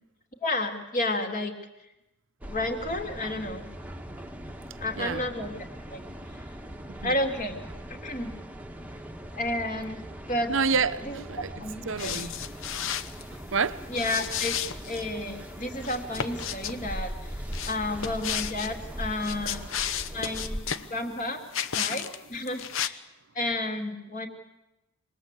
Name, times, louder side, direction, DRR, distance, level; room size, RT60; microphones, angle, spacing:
voice 1, 0.4-1.5 2.4-3.7 4.8-5.5 5.9-6.0 6.3-6.5 7.0-7.6 7.9-8.3 9.3-10.0 10.3-10.5 11.0-11.2 11.6-12.3 13.9-14.5 14.9-19.6 20.1-21.4 21.7-23.0 23.3-24.3, left 1 dB, 35° left, 2.8 m, -31 dB
sound 1, 2.4-20.6, equal, 5° right, 1.3 m, -40 dB
voice 2, 10.5-11.5 11.9-12.3 13.5-13.8 20.8-20.9, right 5 dB, 55° right, 0.9 m, -28 dB
sound 2, 12.0-13.2 13.9-15.1 15.8-16.8 17.5-18.7 19.1-20.9 21.5-22.2 22.5-22.9, left 9 dB, 60° left, 1.0 m, -32 dB
26.5 x 20.0 x 8.4 m
head